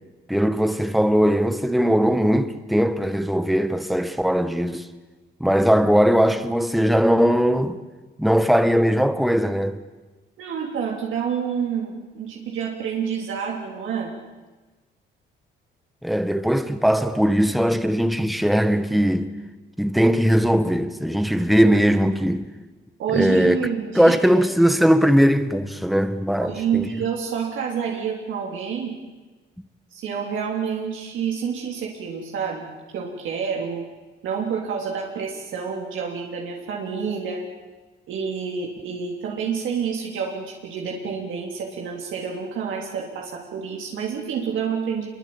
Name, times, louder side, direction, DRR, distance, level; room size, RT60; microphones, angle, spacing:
voice 1, 0.3-4.9 5.4-7.8 8.2-9.8 16.0-19.3 19.8-22.4 23.1-23.6 23.9-26.9, equal, ahead, 1.6 m, -19 dB
voice 2, 10.4-14.2 23.0-24.4 26.4-29.0 29.9-32.7 32.9-33.9 34.2-37.4 38.1-45.1, right 6 dB, 80° right, 3.4 m, -28 dB
25.5 x 23.0 x 8.8 m
cardioid pair, 90°, 20 cm